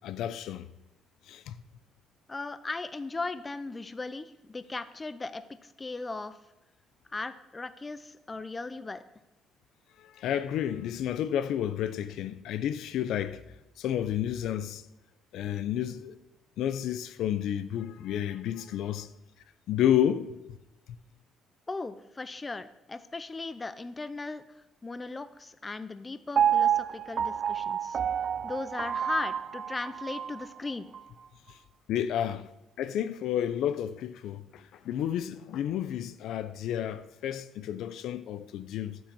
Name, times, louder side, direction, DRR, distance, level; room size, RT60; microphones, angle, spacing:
voice 1, 0.0-0.7 1.3-1.6 10.0-13.4 13.8-14.8 15.3-16.1 16.6-19.1 19.7-20.3 31.9-32.5 32.8-39.0, left 10 dB, 70° left, 0.7 m, -31 dB
voice 2, 2.3-6.4 7.1-9.0 21.7-24.4 24.8-28.0 28.4-30.9, left 3 dB, 15° left, 0.6 m, -37 dB
Piano, 26.4-30.4 30.9-31.0, right 9 dB, 35° right, 0.4 m, -28 dB
12.0 x 9.2 x 7.2 m
cardioid pair, 155°, 0 cm